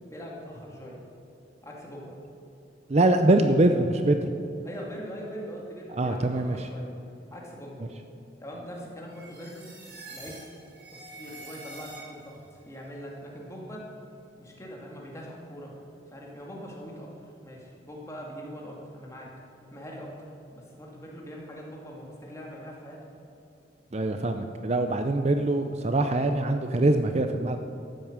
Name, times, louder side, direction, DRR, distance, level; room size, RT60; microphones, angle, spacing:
voice 1, 0.1-1.0 1.6-2.2 4.6-6.9 7.3-7.9 8.4-9.7 10.1-10.4 10.9-13.8 14.4-15.7 16.1-17.1 17.4-19.3 19.7-23.0, equal, 15° left, -2 dB, 2.4 m, -42 dB
voice 2, 2.9-4.3 5.9-6.6 23.9-27.6, right 2 dB, 35° right, 7 dB, 0.6 m, -23 dB
sound 1, 9.1-12.5, right 3 dB, 60° right, 3.2 m, -46 dB
13.0 x 9.2 x 7.2 m, 2.8 s
head